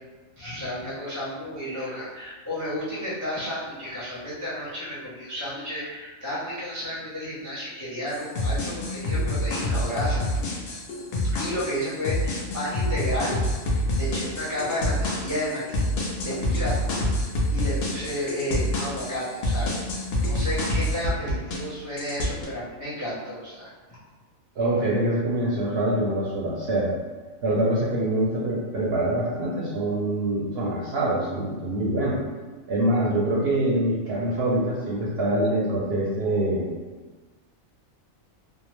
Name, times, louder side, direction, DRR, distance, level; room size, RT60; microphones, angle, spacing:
voice 1, 0.4-10.6 11.2-15.8 16.2-17.0 17.5-24.0, equal, 25° left, -9 dB, 0.4 m, -32 dB
sound 1, 8.1-21.7 22.0-22.5, left 1 dB, 65° left, 0.6 m, -27 dB
voice 2, 24.6-26.9 27.4-32.2 32.7-36.7, right 1 dB, 65° right, -6 dB, 0.6 m, -25 dB
2.7 x 2.0 x 3.0 m, 1.3 s
omnidirectional pair, 1.4 m